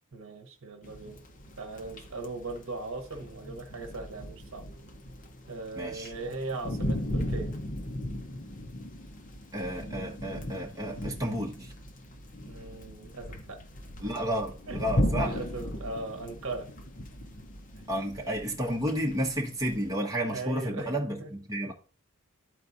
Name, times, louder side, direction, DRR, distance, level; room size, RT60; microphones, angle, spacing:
voice 1, 0.1-1.2 1.6-4.6 5.5-7.5 12.5-13.6 14.7-14.8 15.2-16.7 20.3-20.9 21.2-21.3, right 3 dB, 70° right, 1.0 m, -38 dB
sound 1, 0.8-19.9, equal, 40° left, 0.8 m, -37 dB
voice 2, 5.8-6.1 9.5-11.7 14.0-15.4 17.9-21.7, equal, 15° right, 1.3 m, -31 dB
12.5 x 4.4 x 2.6 m
head